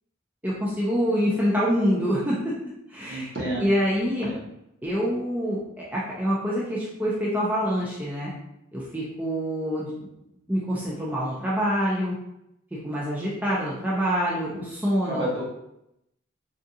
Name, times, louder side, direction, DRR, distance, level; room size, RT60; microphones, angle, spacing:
voice 1, 0.4-2.6 2.9-4.3 4.8-8.3 8.7-10.1 10.5-12.2 12.7-15.3, equal, 10° right, -7 dB, 0.4 m, -26 dB
voice 2, 3.1-3.7 4.0-4.4 15.1-15.4, right 1 dB, 60° right, -6 dB, 1.2 m, -31 dB
3.6 x 2.4 x 2.7 m, 0.82 s
head